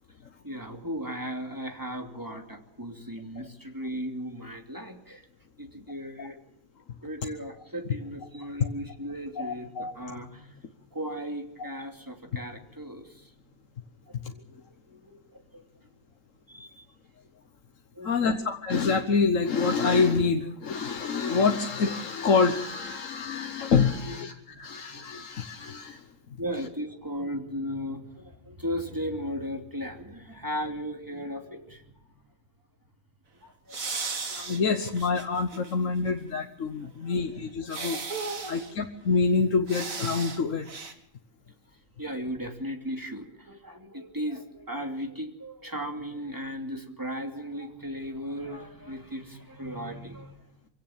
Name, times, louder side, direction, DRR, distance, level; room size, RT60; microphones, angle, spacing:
voice 1, 0.4-5.3 5.6-6.4 7.0-10.6 10.9-13.3 14.0-14.6 14.9-15.6 16.5-16.9 17.9-18.4 23.9-24.2 24.5-25.2 26.4-32.1 33.4-34.1 34.5-34.6 37.0-37.2 38.3-38.7 42.0-50.4, equal, 15° right, 3 dB, 2.8 m, -37 dB
voice 2, 9.4-9.9 11.6-11.7 14.2-14.3 18.0-26.1 34.3-38.0 38.5-40.7, left 4 dB, 70° left, 6 dB, 1.5 m, -26 dB
sound 1, 33.7-35.7 36.1-36.2 37.7-38.7 39.7-40.4 40.6-40.9, right 4 dB, 80° right, 2.4 m, -35 dB
24.5 x 16.5 x 7.3 m, 0.79 s
omnidirectional pair, 1.4 m